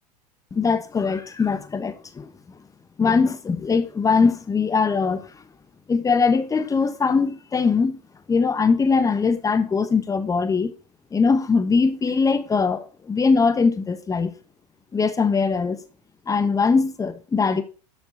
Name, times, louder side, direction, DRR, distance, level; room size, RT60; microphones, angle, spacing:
voice 1, 0.5-2.3 3.0-5.2 5.9-8.0 8.3-10.7 11.1-14.3 14.9-15.8 16.3-17.6, left 5 dB, 15° left, 1.3 m, -21 dB
12.0 x 7.2 x 4.2 m
figure-of-eight pair, 80°, 21 cm